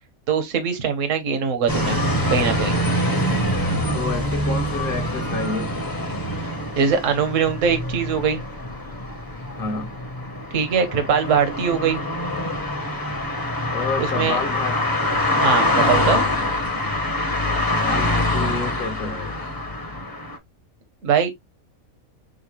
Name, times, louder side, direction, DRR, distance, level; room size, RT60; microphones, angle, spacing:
voice 1, 0.3-2.0 2.3-2.8 6.8-8.4 10.5-12.0 14.0-14.4 15.4-16.2 21.0-21.3, right 6 dB, 65° right, 1.3 m, -21 dB
sound 1, 1.7-20.4, left 1 dB, 20° left, 0.8 m, -24 dB
voice 2, 3.9-5.9 9.5-9.9 13.7-14.8 17.6-19.5, left 4 dB, 45° left, 0.9 m, -29 dB
6.4 x 2.1 x 3.0 m
omnidirectional pair, 1.5 m